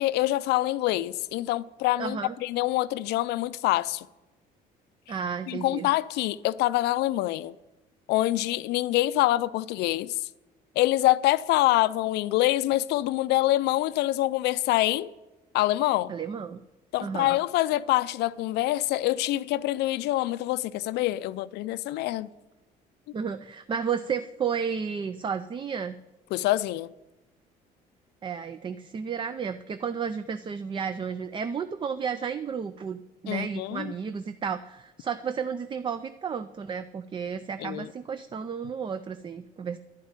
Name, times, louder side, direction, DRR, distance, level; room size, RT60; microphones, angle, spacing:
voice 1, 0.0-4.1 5.5-7.5 8.1-10.2 10.8-15.1 15.5-16.1 16.9-22.3 26.3-26.9 33.3-33.9 37.6-37.9, left 16 dB, 80° left, 0.4 m, -25 dB
voice 2, 2.0-2.4 5.1-5.9 16.1-16.6 17.0-17.4 23.1-26.0 28.2-39.8, right 6 dB, 30° right, 0.4 m, -32 dB
11.0 x 5.6 x 8.8 m
cardioid pair, 110°, 17 cm